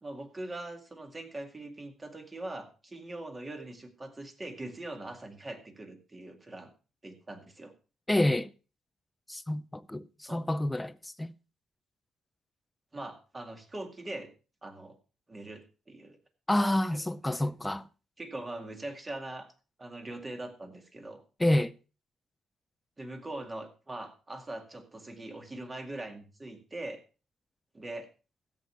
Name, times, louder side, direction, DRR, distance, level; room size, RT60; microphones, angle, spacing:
voice 1, 0.0-6.7 7.0-7.7 10.2-10.4 12.9-14.3 14.6-15.0 15.3-16.2 16.8-17.4 18.2-19.5 19.8-21.2 23.0-27.0 27.7-28.1, right 2 dB, 25° right, 2.2 m, -42 dB
voice 2, 8.1-8.5 9.3-11.3 16.5-17.9 21.4-21.7, left 1 dB, 10° left, 0.6 m, -28 dB
13.5 x 8.5 x 4.6 m
cardioid pair, 90°, 0 cm